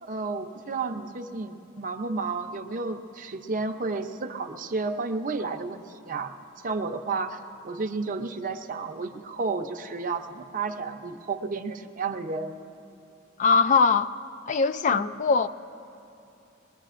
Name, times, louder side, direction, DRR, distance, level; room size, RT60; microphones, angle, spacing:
voice 1, 0.0-6.3 6.6-7.4 7.6-12.6 14.9-15.0, right 3 dB, 40° right, 6 dB, 0.6 m, -32 dB
voice 2, 13.4-14.1 14.5-15.5, left 5 dB, 35° left, 13 dB, 0.3 m, -21 dB
21.0 x 20.5 x 2.5 m, 2.8 s
head